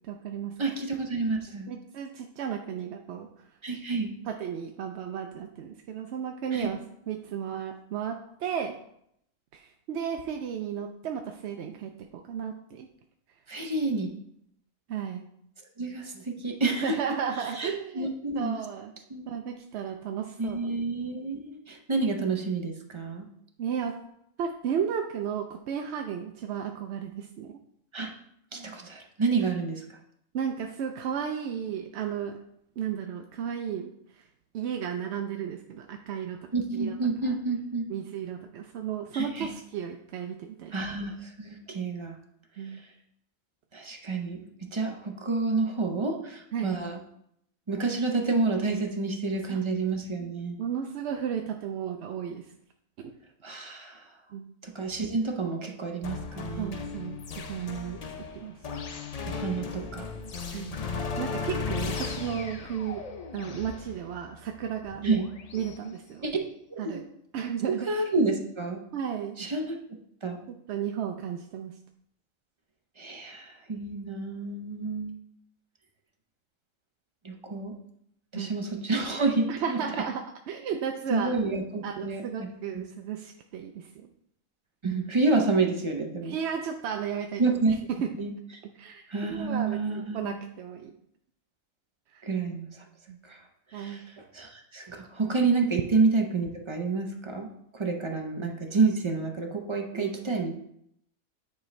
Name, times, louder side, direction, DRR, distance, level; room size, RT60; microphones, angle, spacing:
voice 1, 0.0-0.5 1.7-3.3 4.3-6.8 7.1-8.8 9.5-12.9 14.9-15.3 16.6-18.1 18.4-18.9 19.3-20.8 23.6-24.0 24.4-27.5 30.3-32.4 32.8-34.2 34.5-37.0 37.9-40.7 42.6-42.8 46.5-46.7 49.5-49.6 50.6-52.5 53.0-53.1 54.3-54.5 56.6-57.2 57.5-58.0 58.3-58.8 60.5-60.8 61.2-63.0 63.3-65.2 65.5-66.3 66.8-67.0 67.3-67.9 68.9-69.4 70.7-71.7 78.3-78.5 79.5-81.4 81.8-84.1 86.2-87.4 88.8-90.9 92.1-92.2 93.1-93.2 93.7-94.1 99.9-100.1, right 8 dB, 65° right, 4 dB, 0.7 m, -34 dB
voice 2, 0.6-1.7 3.6-4.1 6.5-6.7 13.5-14.1 15.8-17.0 17.4-18.6 19.1-19.2 20.4-23.3 27.9-28.1 28.5-29.8 36.5-37.9 39.1-39.5 40.7-42.2 43.7-47.0 47.7-50.6 53.4-54.1 54.6-56.8 59.2-60.1 65.0-65.3 66.2-66.3 66.7-67.0 67.7-68.8 69.4-69.8 70.2-70.4 73.0-75.2 77.2-77.8 78.3-80.0 81.1-82.8 84.8-86.3 87.4-87.7 88.1-88.3 89.1-90.4 92.2-92.8 93.2-93.4 93.7-97.5 97.7-100.5, right 3 dB, 30° right, 3 dB, 0.6 m, -29 dB
sound 1, 56.0-65.8, left 5 dB, 75° left, 0.3 m, -36 dB
9.5 x 4.6 x 3.2 m, 0.73 s
omnidirectional pair, 1.4 m